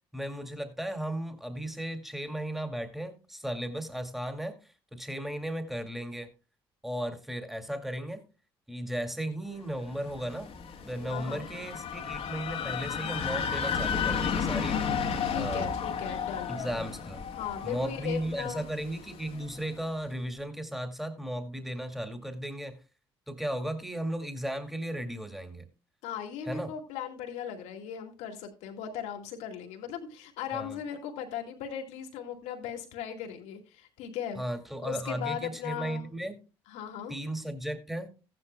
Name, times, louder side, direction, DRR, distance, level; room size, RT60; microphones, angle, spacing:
voice 1, 0.1-6.3 6.8-8.2 8.7-10.5 10.8-14.8 15.3-15.7 16.5-17.2 17.6-22.8 23.3-25.7 26.5-26.7 30.5-30.8 34.4-36.4 37.1-38.1, right 1 dB, ahead, 6 dB, 2.1 m, -35 dB
sound 1, 9.8-19.7, left 6 dB, 55° left, 1.5 m, -33 dB
voice 2, 11.1-11.5 15.2-16.6 17.3-18.7 26.0-34.4 34.8-36.1 36.7-37.1, left 9 dB, 80° left, 3 dB, 2.1 m, -38 dB
15.0 x 10.5 x 2.2 m, 0.32 s
hypercardioid pair, 55°, 12 cm